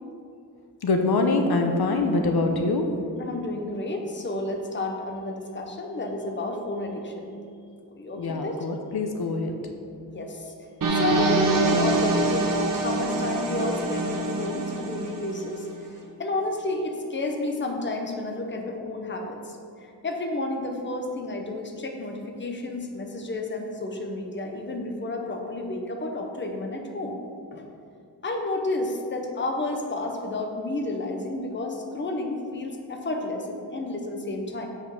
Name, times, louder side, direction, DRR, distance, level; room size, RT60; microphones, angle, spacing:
voice 1, 0.8-2.8 8.2-9.5, left 3 dB, 70° left, 4 dB, 0.8 m, -24 dB
voice 2, 3.2-7.3 7.9-8.6 10.1-15.7 16.2-27.2 27.5-27.6 28.2-34.7, left 2 dB, 30° left, 2 dB, 0.8 m, -31 dB
sound 1, 10.8-15.7, right 2 dB, 55° right, 1.1 m, -25 dB
7.1 x 5.7 x 5.9 m, 2.4 s
wide cardioid pair, 170°, 39 cm